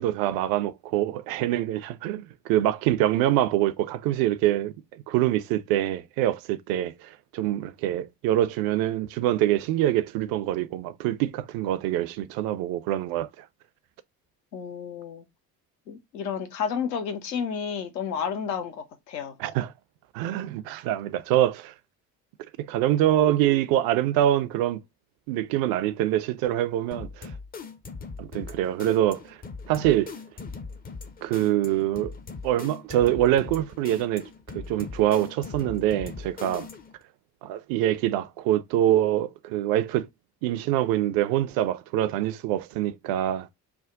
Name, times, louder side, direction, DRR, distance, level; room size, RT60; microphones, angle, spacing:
voice 1, 0.0-4.7 5.1-13.3 19.4-19.7 20.1-21.7 22.6-24.8 25.3-27.3 28.2-29.4 29.7-30.2 31.2-32.1 32.4-36.7 37.4-40.1 40.4-43.5, right 13 dB, 45° right, 0.5 m, -25 dB
voice 2, 14.5-15.2 15.9-19.4, left 7 dB, 80° left, 0.8 m, -31 dB
sound 1, 26.9-37.0, left 4 dB, 20° left, 0.5 m, -40 dB
3.4 x 2.2 x 3.7 m
figure-of-eight pair, 50°, 49 cm